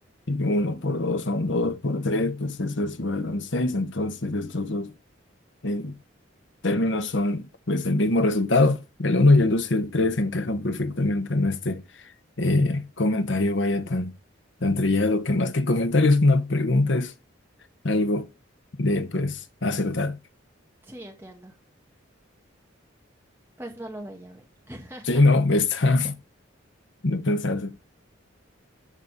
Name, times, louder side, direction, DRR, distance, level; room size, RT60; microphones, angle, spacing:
voice 1, 0.3-4.9 5.6-6.0 6.6-11.8 12.4-14.1 14.6-17.1 17.8-18.3 18.8-20.2 25.1-26.2 27.0-27.7, left 2 dB, 65° left, 1.1 m, -23 dB
voice 2, 20.8-21.6 23.6-25.2, right 1 dB, 10° right, 1.7 m, -41 dB
11.0 x 4.2 x 6.6 m
head